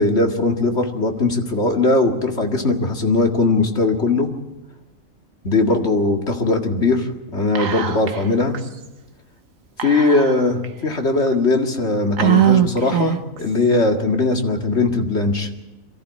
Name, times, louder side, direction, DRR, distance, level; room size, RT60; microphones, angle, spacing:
voice 1, 0.0-4.3 5.4-8.6 9.8-15.5, left 3 dB, 55° left, 3 dB, 2.3 m, -19 dB
Whispering, 7.5-8.3 8.5-8.6 9.8-10.6 11.3-11.4 12.2-13.4, right 10 dB, 75° right, 1.5 m, -20 dB
23.0 x 15.0 x 8.4 m, 1.0 s
omnidirectional pair, 1.4 m